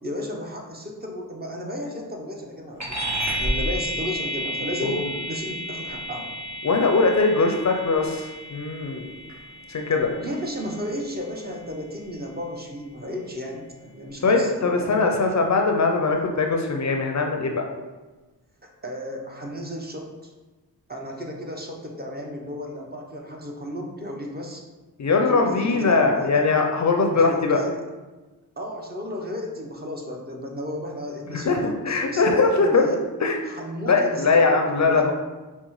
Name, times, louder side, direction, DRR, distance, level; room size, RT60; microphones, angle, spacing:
voice 1, 0.0-3.1 3.4-6.4 10.2-15.0 18.8-20.3 20.9-24.6 25.1-26.5 27.1-27.8 28.6-33.0 33.4-35.1, equal, 25° right, 0 dB, 0.7 m, -34 dB
sound 1, 2.8-12.6, right 1 dB, 45° right, 1.3 m, -32 dB
voice 2, 6.6-9.1 9.7-10.1 14.2-17.7 25.0-27.6 31.3-32.8 33.2-33.4 33.9-35.1, left 3 dB, 45° left, 3 dB, 0.5 m, -21 dB
5.1 x 2.1 x 3.0 m, 1.2 s
cardioid pair, 45°, 39 cm